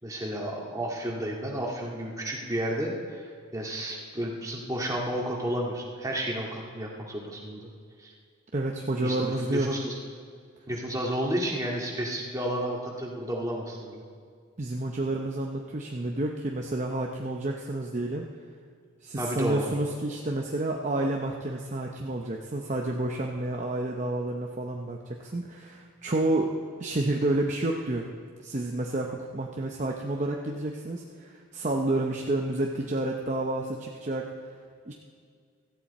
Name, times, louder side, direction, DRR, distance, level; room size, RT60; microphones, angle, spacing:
voice 1, 0.0-7.6 8.0-8.1 9.0-10.0 10.7-14.0 19.2-19.7, right 1 dB, 15° right, -2 dB, 2.1 m, -32 dB
voice 2, 8.5-9.7 14.6-18.3 19.0-26.5 26.8-28.1 28.4-34.3 34.8-34.9, right 2 dB, 35° right, 1 dB, 0.8 m, -30 dB
16.5 x 14.0 x 4.3 m, 2.1 s
head